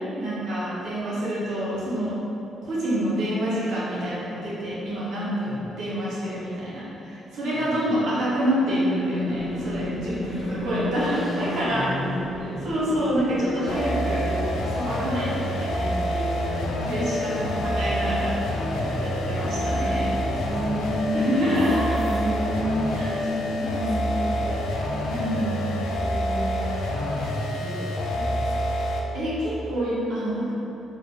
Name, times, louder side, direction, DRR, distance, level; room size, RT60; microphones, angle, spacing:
voice 1, 0.2-2.1 2.6-11.9 12.4-18.5 19.0-20.1 21.1-22.1 22.9-24.1 25.1-25.5 29.1-30.5, equal, 75° right, -9 dB, 1.1 m, -27 dB
voice 2, 7.5-7.9 10.2-10.7 11.7-12.3 18.7-19.3 20.1-21.4 23.5-24.9 26.9-28.8, left 2 dB, 45° left, -5 dB, 0.7 m, -38 dB
sound 1, 8.6-26.6, equal, 15° right, 0.9 m, -33 dB
sound 2, 9.3-26.3, equal, 10° left, 1.0 m, -40 dB
sound 3, 13.7-29.2, equal, 90° left, 0.3 m, -27 dB
3.2 x 2.6 x 2.9 m, 2.9 s
cardioid pair, 90°, 0 cm